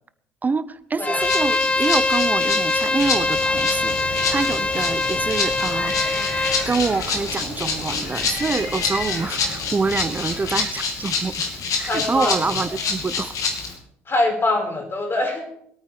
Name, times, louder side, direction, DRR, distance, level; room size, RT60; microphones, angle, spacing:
voice 1, 0.4-5.9 6.7-11.3 11.8-13.4, right 4 dB, 25° right, 16 dB, 0.8 m, -26 dB
Bowed string instrument, 1.0-6.7, left 3 dB, 15° left, 0.6 m, -23 dB
Rattle (instrument), 1.2-13.7, left 4 dB, 55° left, 2.7 m, -27 dB
sound 1, 3.0-10.7, left 1 dB, 75° left, 4.5 m, -34 dB
voice 2, 11.8-12.5 14.1-15.5, left 2 dB, 30° left, 2 dB, 5.2 m, -23 dB
21.5 x 9.1 x 4.9 m, 0.70 s
hypercardioid pair, 60°, 7 cm